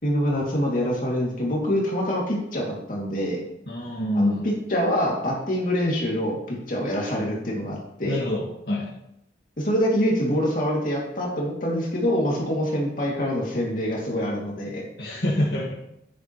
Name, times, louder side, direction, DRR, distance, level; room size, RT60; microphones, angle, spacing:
voice 1, 0.0-3.4 4.1-8.2 9.6-14.8, equal, 45° left, -2 dB, 2.6 m, -25 dB
voice 2, 3.7-4.5 8.1-8.9 15.0-15.8, left 1 dB, 60° left, -6 dB, 1.9 m, -26 dB
9.9 x 9.6 x 3.2 m, 0.80 s
head